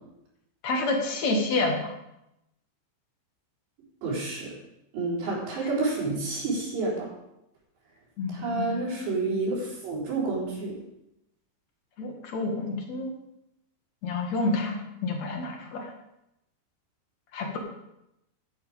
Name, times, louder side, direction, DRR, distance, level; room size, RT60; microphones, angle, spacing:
voice 1, 0.6-1.9 8.2-8.8 12.0-13.1 14.0-15.9 17.3-17.6, left 2 dB, 45° left, 1 dB, 2.8 m, -29 dB
voice 2, 4.0-4.6 4.9-7.1 8.3-10.8, right 3 dB, 70° right, -6 dB, 6.3 m, -29 dB
13.0 x 11.5 x 5.0 m, 0.86 s
omnidirectional pair, 5.2 m